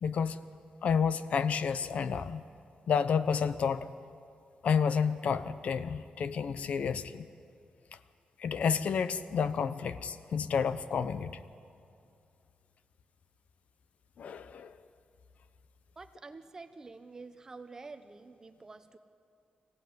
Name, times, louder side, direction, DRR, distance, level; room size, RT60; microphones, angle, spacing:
voice 1, 0.0-0.4 0.8-2.4 2.9-3.9 4.6-7.3 8.4-11.4 14.2-14.8, left 6 dB, 55° left, 13 dB, 0.8 m, -30 dB
voice 2, 16.0-19.0, right 3 dB, 20° right, 9 dB, 1.0 m, -48 dB
25.0 x 16.5 x 9.5 m, 2.4 s
wide cardioid pair, 180°, 3 cm